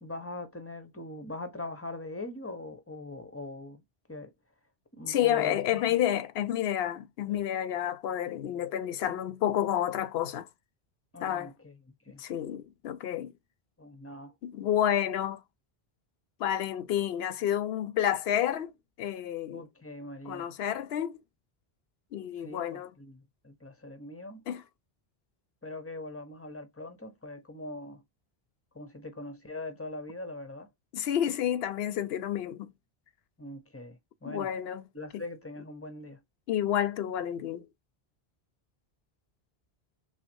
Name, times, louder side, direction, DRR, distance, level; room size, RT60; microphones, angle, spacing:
voice 1, 0.0-3.8 4.1-4.3 5.0-6.0 7.3-7.4 11.1-11.8 12.1-12.2 13.8-14.3 19.5-20.5 22.4-24.4 25.6-28.0 28.7-30.7 33.4-34.5 34.9-36.2, left 2 dB, 15° left, 0.6 m, -42 dB
voice 2, 5.1-10.5 11.2-11.5 12.2-13.3 14.4-15.4 16.4-19.6 20.3-21.2 22.1-22.9 24.5-24.6 30.9-32.7 34.3-34.8 35.1-35.2 36.5-37.7, left 11 dB, 80° left, 0.8 m, -30 dB
5.8 x 2.0 x 2.6 m
omnidirectional pair, 1.1 m